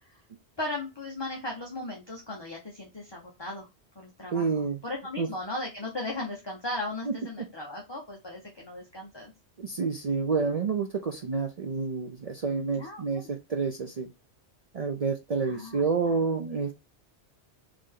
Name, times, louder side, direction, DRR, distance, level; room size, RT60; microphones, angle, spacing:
voice 1, 0.6-3.7 4.0-4.5 4.8-9.3 12.8-13.3 15.4-16.2, left 2 dB, 25° left, -2 dB, 1.0 m, -37 dB
voice 2, 4.3-4.8 5.2-5.3 7.0-7.1 9.6-14.1 14.7-16.8, right 5 dB, 45° right, 4 dB, 0.5 m, -29 dB
3.9 x 3.3 x 3.7 m, 0.24 s
omnidirectional pair, 1.1 m